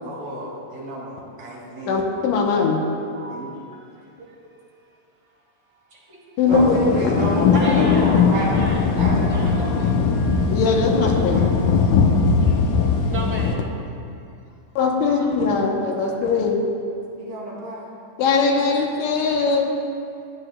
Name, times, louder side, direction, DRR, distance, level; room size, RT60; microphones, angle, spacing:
voice 1, 0.0-2.0 2.3-2.4 3.3-3.5 6.5-8.5 9.0-9.9 10.9-11.1 11.3-11.5 17.2-17.9, right 1 dB, 85° right, -5 dB, 4.2 m, -30 dB
voice 2, 1.9-2.8 6.4-6.8 10.5-11.4 14.8-16.6 18.2-19.7, left 4 dB, 70° left, 1 dB, 1.8 m, -20 dB
voice 3, 3.0-4.0 5.9-6.2 7.5-10.0 11.8-11.9 12.4-12.5 13.1-13.7 15.1-15.3 16.0-16.1, right 1 dB, 50° right, -3 dB, 1.6 m, -34 dB
sound 1, 6.5-13.6, left 5 dB, 90° left, 2.3 m, -19 dB
Wind instrument woodwind instrument, 8.7-13.1, right 3 dB, 40° left, 2.4 m, -37 dB
15.5 x 9.7 x 2.2 m, 2.5 s
omnidirectional pair, 3.9 m